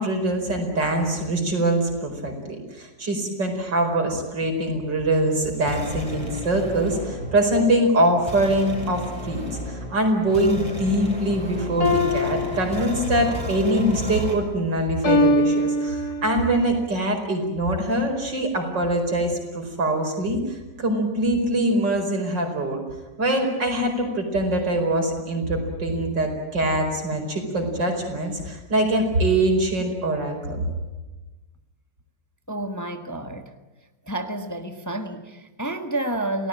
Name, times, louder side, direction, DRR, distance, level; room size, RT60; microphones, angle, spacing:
voice 1, 0.0-22.8 23.2-30.6, right 1 dB, 85° right, 4 dB, 5.5 m, -23 dB
sound 1, 5.2-14.4, equal, 15° right, 5.1 m, -34 dB
sound 2, 11.8-13.4 15.0-16.5, left 2 dB, 60° left, 3.7 m, -23 dB
voice 2, 32.5-33.6 34.1-36.5, right 1 dB, 10° left, 7 dB, 1.4 m, -30 dB
28.5 x 18.5 x 8.9 m, 1.1 s
omnidirectional pair, 1.9 m